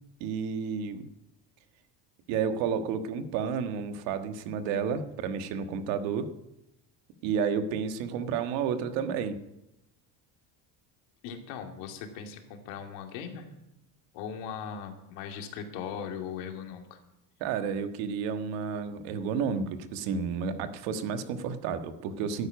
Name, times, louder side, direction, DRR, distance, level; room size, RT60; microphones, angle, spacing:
voice 1, 0.2-1.1 2.3-6.3 7.2-9.4 17.4-22.5, right 6 dB, 85° right, 8 dB, 1.6 m, -31 dB
voice 2, 11.2-13.5 14.1-17.0, left 7 dB, 85° left, 4 dB, 2.6 m, -39 dB
12.5 x 9.8 x 9.2 m, 0.89 s
cardioid pair, 120°, 44 cm